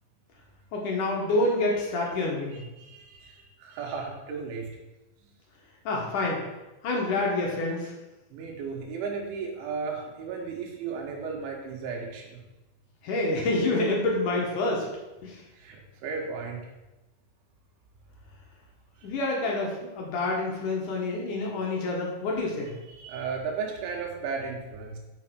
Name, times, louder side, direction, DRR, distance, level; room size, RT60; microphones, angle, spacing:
voice 1, 0.7-2.6 5.9-6.4 6.8-7.9 13.0-14.8 15.2-15.4 19.0-22.7, left 2 dB, 65° left, -1 dB, 2.1 m, -27 dB
voice 2, 2.5-4.7 8.3-12.4 15.6-16.6 22.9-25.0, right 5 dB, 85° right, 1 dB, 3.9 m, -35 dB
7.0 x 5.7 x 6.1 m, 1.0 s
omnidirectional pair, 5.3 m